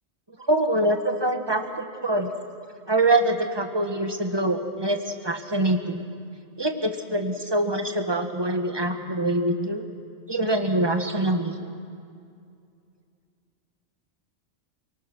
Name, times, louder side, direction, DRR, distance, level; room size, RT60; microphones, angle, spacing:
voice 1, 0.5-2.3 2.9-6.0 6.6-9.8 10.3-11.6, right 1 dB, 20° right, 5 dB, 1.5 m, -24 dB
28.5 x 19.0 x 6.1 m, 2.3 s
omnidirectional pair, 1.2 m